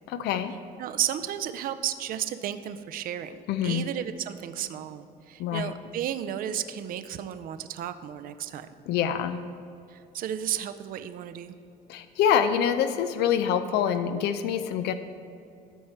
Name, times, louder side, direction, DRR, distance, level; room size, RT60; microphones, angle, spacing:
voice 1, 0.1-0.5 3.5-3.9 5.4-5.7 8.9-9.4 11.9-14.9, left 8 dB, 80° left, 9 dB, 0.5 m, -25 dB
voice 2, 0.8-8.7 9.9-11.6, right 10 dB, 55° right, 10 dB, 0.4 m, -33 dB
12.5 x 4.6 x 4.3 m, 2.6 s
cardioid pair, 110°, 17 cm